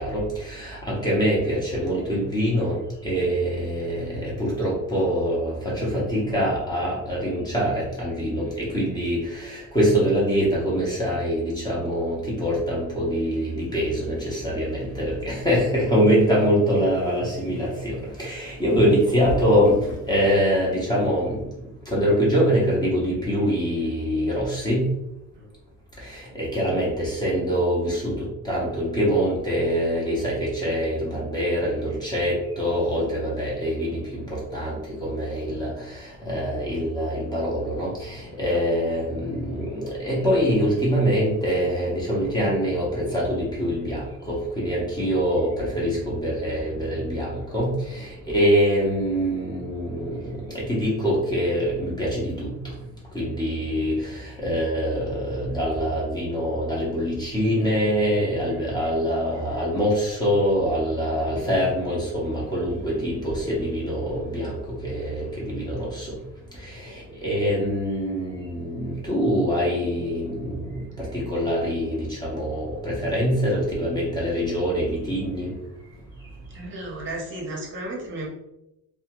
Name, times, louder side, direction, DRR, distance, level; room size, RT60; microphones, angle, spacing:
voice 1, 0.0-21.4 21.9-24.9 26.0-52.7 53.1-66.1 66.6-75.5, equal, 15° left, -5 dB, 0.7 m, -24 dB
voice 2, 76.5-78.3, right 2 dB, 40° right, -2 dB, 0.7 m, -34 dB
2.7 x 2.2 x 2.9 m, 0.87 s
cardioid pair, 165°, 31 cm